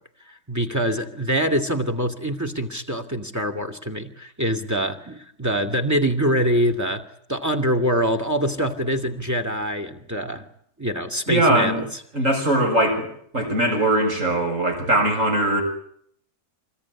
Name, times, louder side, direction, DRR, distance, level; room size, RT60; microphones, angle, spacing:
voice 1, 0.5-7.0 7.3-10.5 10.8-11.9, equal, 10° right, 9 dB, 2.4 m, -24 dB
voice 2, 11.3-11.8 12.1-13.1 13.3-15.6, right 1 dB, 55° right, 3 dB, 7.4 m, -20 dB
25.5 x 21.5 x 9.9 m, 0.67 s
omnidirectional pair, 1.6 m